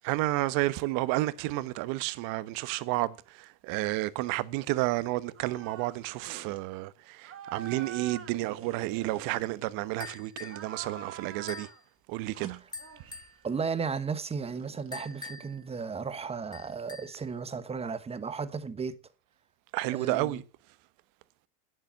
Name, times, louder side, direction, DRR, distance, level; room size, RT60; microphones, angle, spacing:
voice 1, 0.1-3.1 3.6-6.9 7.2-11.7 12.1-12.6 19.7-20.4, right 18 dB, 45° right, 1.1 m, -31 dB
sound 1, 5.4-6.0 6.3-6.6 7.2-10.0 10.4-11.8 12.3-13.4 14.5-16.3, right 8 dB, 30° right, 2.3 m, -46 dB
sound 2, 10.0-10.7 11.5-11.8 12.7-13.4 14.9-15.6 16.5-17.2, left 4 dB, 10° left, 1.6 m, -44 dB
voice 2, 13.4-19.0 19.9-20.4, right 5 dB, 15° right, 1.2 m, -34 dB
11.0 x 10.0 x 7.4 m
hypercardioid pair, 120°, 46 cm